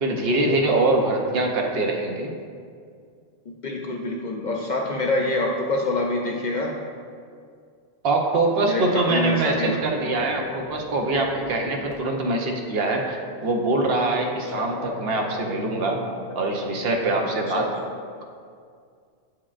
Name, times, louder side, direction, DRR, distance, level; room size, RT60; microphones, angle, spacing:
voice 1, 0.0-2.3 8.0-16.0 16.4-17.7, right 2 dB, 65° right, 1 dB, 0.9 m, -23 dB
voice 2, 3.6-6.8 8.6-9.9 14.6-14.7 17.6-17.7, left 2 dB, 55° left, 0 dB, 0.5 m, -26 dB
sound 1, 9.0-11.9 14.3-17.7, left 2 dB, 85° left, 1.3 m, -38 dB
8.4 x 4.7 x 2.4 m, 2.2 s
omnidirectional pair, 1.1 m